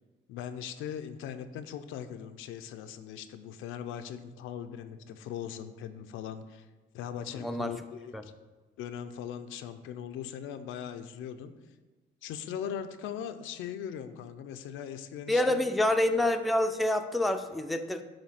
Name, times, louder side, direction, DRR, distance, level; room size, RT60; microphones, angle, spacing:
voice 1, 0.3-6.7 6.9-8.3 8.8-11.5 12.2-15.6, left 9 dB, 90° left, 9 dB, 0.5 m, -40 dB
voice 2, 7.3-7.7 8.1-8.2 15.3-18.0, left 1 dB, ahead, 6 dB, 0.4 m, -27 dB
7.2 x 2.7 x 5.7 m, 1.3 s
cardioid pair, 90°, 20 cm